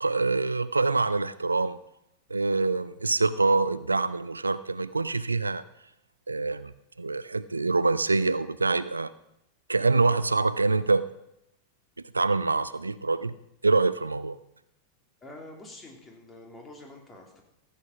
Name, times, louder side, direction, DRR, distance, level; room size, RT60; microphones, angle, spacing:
voice 1, 0.0-1.8 2.3-5.6 6.3-6.7 7.0-9.1 9.7-11.0 12.1-13.3 13.6-14.4, right 3 dB, 80° right, 16 dB, 0.4 m, -25 dB
voice 2, 15.2-17.4, left 1 dB, 15° left, 0 dB, 2.9 m, -46 dB
14.5 x 8.1 x 5.7 m, 0.84 s
figure-of-eight pair, 90°, 0 cm